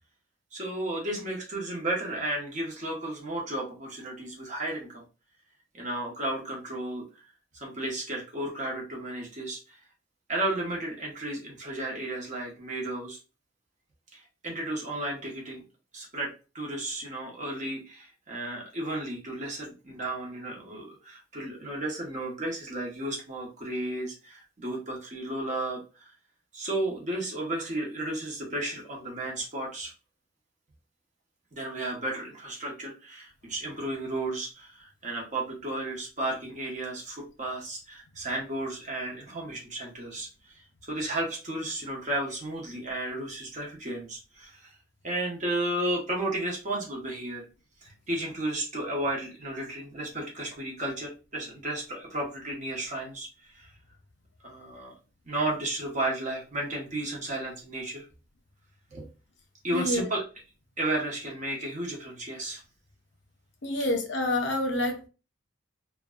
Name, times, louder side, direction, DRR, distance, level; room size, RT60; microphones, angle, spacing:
voice 1, 0.5-5.0 5.7-7.0 7.5-9.8 10.3-13.2 14.1-15.6 15.9-26.1 26.5-29.9 31.5-40.5 40.8-44.7 45.0-47.4 47.8-53.7 54.4-54.9 55.3-58.0 58.9-59.1 59.6-60.2 60.8-62.6, right 1 dB, 35° right, -1 dB, 0.8 m, -33 dB
voice 2, 59.7-60.1 63.6-65.1, left 1 dB, 60° left, 3 dB, 0.6 m, -28 dB
2.5 x 2.1 x 2.2 m, 0.32 s
head